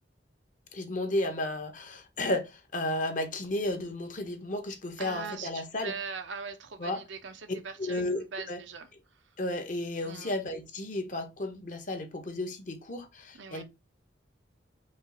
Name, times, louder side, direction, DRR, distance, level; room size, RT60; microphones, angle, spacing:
voice 1, 0.7-5.9 6.8-7.0 7.8-8.6 9.4-13.6, left 1 dB, 45° left, 1.0 m, -33 dB
voice 2, 5.0-8.9 10.0-10.3 13.3-13.6, right 5 dB, 90° right, 0.8 m, -41 dB
5.3 x 2.5 x 3.9 m
head